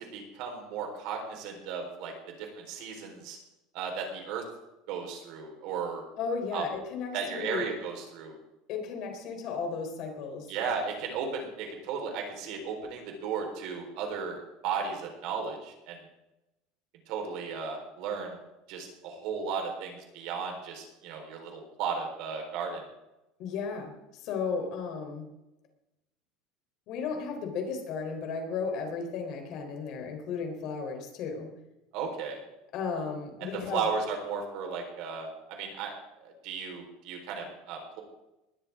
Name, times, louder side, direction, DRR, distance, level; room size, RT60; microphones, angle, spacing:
voice 1, 0.0-2.1 2.4-3.4 3.7-4.4 4.9-6.0 6.5-6.7 7.1-8.4 10.5-16.0 17.1-18.4 18.7-22.8 31.9-32.4 33.4-35.9 36.2-38.0, right 5 dB, 60° right, 3 dB, 4.2 m, -35 dB
voice 2, 6.2-7.7 8.7-10.5 23.4-23.9 24.2-25.3 26.9-31.5 32.7-33.9, left 5 dB, 50° left, 3 dB, 3.7 m, -34 dB
20.0 x 13.5 x 3.7 m, 0.95 s
cardioid pair, 155°, 0 cm